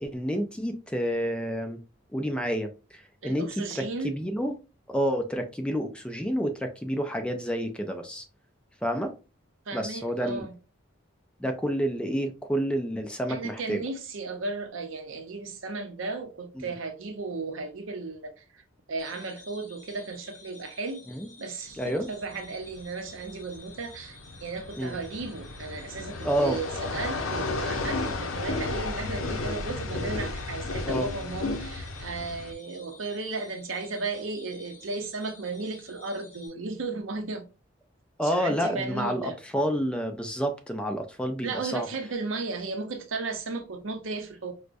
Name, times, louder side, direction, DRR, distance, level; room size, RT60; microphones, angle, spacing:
voice 1, 0.0-1.8 2.1-3.5 3.8-4.5 4.9-8.2 8.8-9.1 9.7-10.5 11.4-13.8 16.6-16.7 21.1-21.3 21.8-22.1 24.8-25.0 26.2-26.6 30.9-31.1 38.2-41.9, equal, 5° left, 0.4 m, -29 dB
voice 2, 3.2-4.2 9.7-10.5 13.3-18.6 18.9-21.0 21.4-37.4 38.2-39.4 41.4-44.5, right 3 dB, 80° right, 0.6 m, -35 dB
sound 1, 19.0-36.5, left 3 dB, 50° left, 1.3 m, -52 dB
sound 2, 21.7-32.5, left 3 dB, 85° left, 0.6 m, -33 dB
4.7 x 2.1 x 2.4 m
head